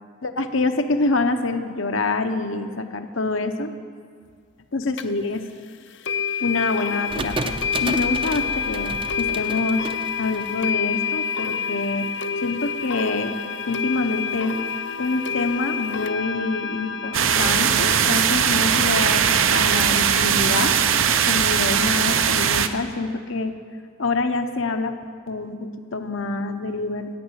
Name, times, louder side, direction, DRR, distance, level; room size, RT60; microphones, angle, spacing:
voice 1, 0.2-3.7 4.7-5.4 6.4-9.9 10.2-12.1 12.4-13.3 13.7-14.6 15.0-20.7 21.2-23.5 24.0-27.2, left 3 dB, 75° left, 7 dB, 0.9 m, -26 dB
sound 1, 5.0-5.1 6.0-18.5, left 6 dB, 55° left, 0.6 m, -28 dB
sound 2, 7.1-11.0, right 2 dB, 25° right, 0.5 m, -32 dB
sound 3, 17.1-22.7, right 8 dB, 75° right, 0.7 m, -19 dB
13.0 x 9.0 x 8.1 m, 2.1 s
head